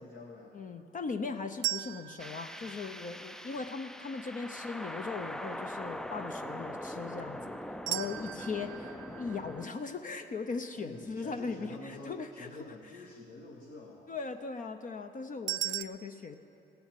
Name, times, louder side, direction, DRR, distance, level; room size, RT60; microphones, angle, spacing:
voice 1, 0.0-0.5 7.3-8.2 10.7-14.1, left 2 dB, 70° left, -5 dB, 2.1 m, -48 dB
voice 2, 0.5-7.5 7.9-12.5 14.1-16.4, left 4 dB, 40° left, 7 dB, 0.7 m, -39 dB
sound 1, 1.6-3.7 7.9-11.0 15.5-15.8, right 16 dB, 70° right, 0.4 m, -39 dB
sound 2, 2.2-9.7, equal, 5° left, 0.4 m, -42 dB
17.0 x 7.0 x 9.0 m, 2.7 s
cardioid pair, 90°, 20 cm